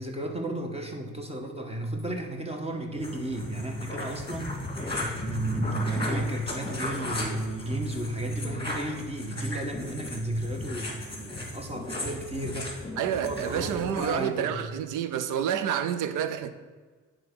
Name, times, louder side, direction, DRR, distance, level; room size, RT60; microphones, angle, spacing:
voice 1, 0.0-4.5 5.1-12.7 13.2-14.6, right 1 dB, 20° right, 3 dB, 1.3 m, -33 dB
sound 1, 3.0-14.1, left 2 dB, 15° left, 1.8 m, -36 dB
voice 2, 13.0-16.5, right 9 dB, 90° right, 11 dB, 0.6 m, -29 dB
9.6 x 3.6 x 5.3 m, 1.4 s
cardioid pair, 90°, 30 cm